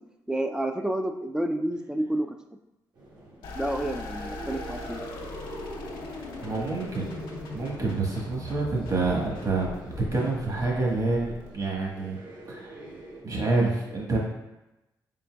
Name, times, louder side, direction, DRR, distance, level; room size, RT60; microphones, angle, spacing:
voice 1, 0.3-2.3 3.6-5.0, right 1 dB, 10° right, 5 dB, 0.4 m, -29 dB
sound 1, 2.9-13.2, right 2 dB, 60° right, 1.3 m, -45 dB
sound 2, 3.4-11.9, left 2 dB, 85° left, 0.7 m, -39 dB
voice 2, 6.4-7.1 7.5-12.2 12.5-12.7 13.2-14.2, right 3 dB, 45° right, -3 dB, 1.4 m, -27 dB
4.3 x 3.9 x 2.3 m, 0.97 s
supercardioid pair, 55°, 9 cm